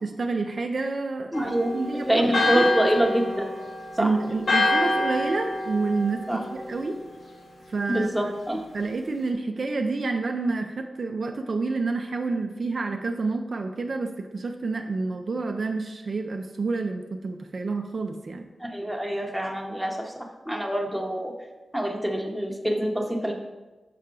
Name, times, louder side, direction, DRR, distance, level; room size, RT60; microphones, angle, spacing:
voice 1, 0.0-2.9 4.0-7.0 7.7-8.3 8.7-18.5, right 3 dB, 55° right, 4 dB, 0.4 m, -29 dB
Church bell, 1.3-7.0, left 2 dB, 70° left, 0.9 m, -27 dB
voice 2, 1.3-1.7 2.1-3.5 4.0-4.1 6.3-6.4 7.9-8.7 18.6-20.1 20.5-21.3 21.7-23.3, right 1 dB, 5° right, 1 dB, 0.8 m, -25 dB
5.7 x 5.4 x 3.7 m, 1.2 s
wide cardioid pair, 110°, 0 cm